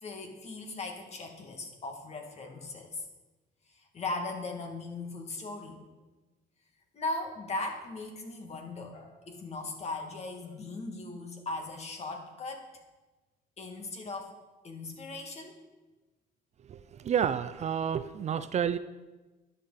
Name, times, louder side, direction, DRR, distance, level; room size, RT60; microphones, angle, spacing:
voice 1, 0.0-3.1 3.7-5.8 6.9-12.7 13.6-14.4 14.6-15.6, left 2 dB, 40° left, 3 dB, 2.2 m, -38 dB
voice 2, 17.0-18.8, right 8 dB, 40° right, 13 dB, 0.5 m, -29 dB
13.0 x 10.5 x 4.1 m, 1.2 s
cardioid pair, 110°, 17 cm